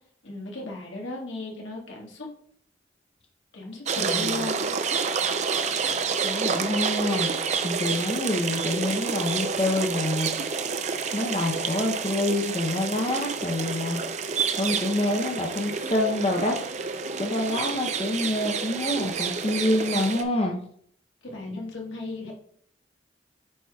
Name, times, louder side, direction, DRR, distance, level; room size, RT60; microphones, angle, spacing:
voice 1, 0.2-2.3 3.5-4.8 21.2-22.3, left 2 dB, 85° left, -1 dB, 1.5 m, -36 dB
sound 1, 3.9-20.2, right 5 dB, 40° right, 0.4 m, -29 dB
voice 2, 4.0-4.4 6.2-7.3 7.6-10.3 11.1-14.0 14.5-16.6 17.2-20.6, left 1 dB, 30° left, 2 dB, 0.7 m, -27 dB
8.5 x 4.9 x 2.3 m, 0.63 s
head